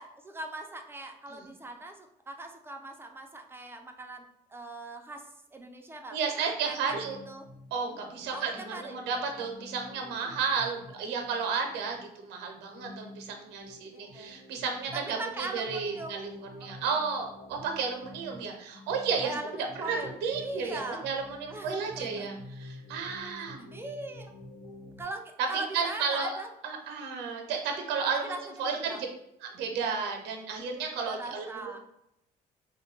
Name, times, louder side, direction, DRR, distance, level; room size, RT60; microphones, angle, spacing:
voice 1, 0.0-4.3 4.5-5.3 5.5-7.0 7.3-7.5 8.3-9.0 13.9-14.3 14.9-16.2 16.6-17.0 19.2-21.1 21.5-22.3 23.7-24.3 25.0-26.5 27.0-27.1 28.1-29.0 31.0-31.8, right 2 dB, 15° right, 4 dB, 0.4 m, -40 dB
voice 2, 6.1-7.2 7.7-23.7 25.5-26.4 26.6-29.1 29.4-31.8, right 5 dB, 85° right, 3 dB, 0.6 m, -33 dB
sound 1, 6.9-25.0, left 2 dB, 90° left, 0.9 m, -49 dB
2.6 x 2.2 x 3.7 m, 0.81 s
cardioid pair, 110°, 17 cm